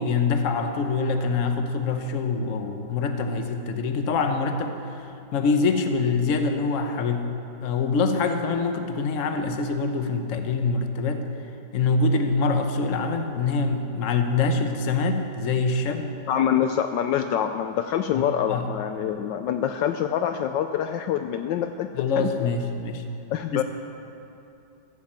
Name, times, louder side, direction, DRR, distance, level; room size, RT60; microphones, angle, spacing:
voice 1, 0.0-7.3 7.6-11.3 11.7-16.1 18.1-18.2 18.5-18.7 21.9-23.0 23.5-23.6, left 4 dB, 50° left, 6 dB, 1.1 m, -25 dB
voice 2, 16.3-21.9 22.2-22.5 23.3-23.6, left 9 dB, 75° left, 8 dB, 1.2 m, -25 dB
15.0 x 8.6 x 7.4 m, 2.9 s
omnidirectional pair, 2.1 m